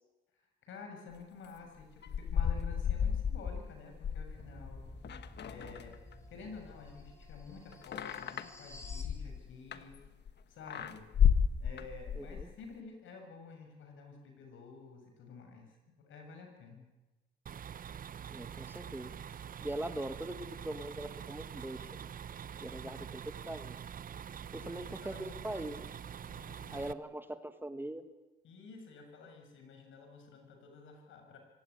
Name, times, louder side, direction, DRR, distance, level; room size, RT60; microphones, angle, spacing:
voice 1, 0.3-4.9 5.4-6.0 6.3-10.0 10.2-11.1 11.6-16.9 22.8-23.0 24.4-25.7 26.3-27.0 28.4-31.4, left 4 dB, 80° left, 4 dB, 7.2 m, -51 dB
sound 1, 1.8-6.3 6.6-10.3 10.7-12.5, left 8 dB, 60° left, 1.5 m, -32 dB
sound 2, 4.3-9.2, left 1 dB, 15° left, 6.3 m, -53 dB
voice 2, 12.2-12.5 18.3-19.1 19.6-21.9 22.6-23.0 23.5-23.7 24.5-25.8 26.7-28.0, right 1 dB, 10° right, 9 dB, 1.8 m, -41 dB
sound 3, 17.5-26.9, right 8 dB, 45° right, 0.7 m, -45 dB
25.0 x 16.5 x 10.0 m, 1.1 s
cardioid pair, 90°, 20 cm